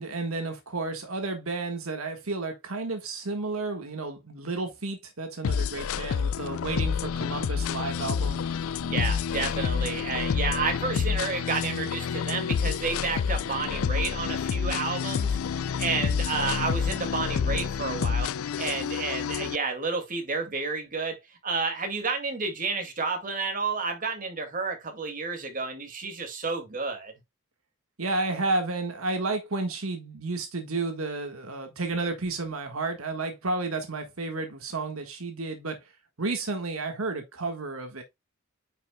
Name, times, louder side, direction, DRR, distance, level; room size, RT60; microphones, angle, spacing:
voice 1, 0.0-8.4 28.0-35.8 36.2-38.0, right 3 dB, 80° right, 1.6 m, -32 dB
sound 1, 5.4-19.6, left 6 dB, 75° left, 0.4 m, -28 dB
voice 2, 8.8-18.3 18.6-27.1, right 4 dB, 40° right, 2.2 m, -31 dB
9.4 x 5.7 x 2.3 m
head